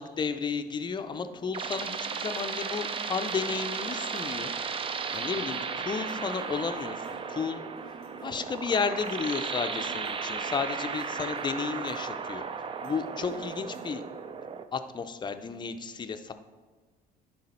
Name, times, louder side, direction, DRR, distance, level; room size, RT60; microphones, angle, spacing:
voice 1, 0.0-4.5 5.1-7.6 8.2-12.4 12.8-14.0 14.7-16.3, left 5 dB, 25° left, 9 dB, 0.5 m, -33 dB
sound 1, 1.0-14.7, right 5 dB, 30° right, 0.5 m, -35 dB
sound 2, 1.6-14.8, right 2 dB, 65° right, 1.1 m, -52 dB
10.5 x 3.9 x 4.3 m, 1.4 s
cardioid pair, 110°, 17 cm